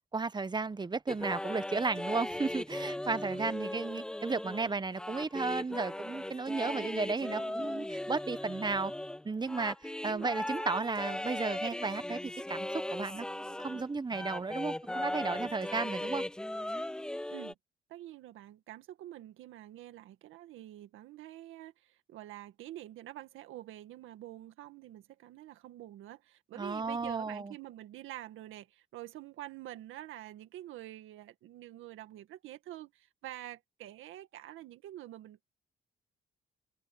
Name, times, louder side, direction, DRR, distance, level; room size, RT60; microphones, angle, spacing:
voice 1, 0.1-8.9 9.2-12.2 12.5-16.2 26.6-27.5, right 4 dB, 20° right, 1.1 m, -34 dB
sound 1, 1.1-13.9 14.1-17.5, left 1 dB, 5° left, 0.3 m, -38 dB
voice 2, 3.3-3.8 6.6-7.7 10.0-10.5 17.3-17.6 17.9-35.4, right 14 dB, 85° right, 1.9 m, -47 dB
open air
cardioid pair, 90°, 20 cm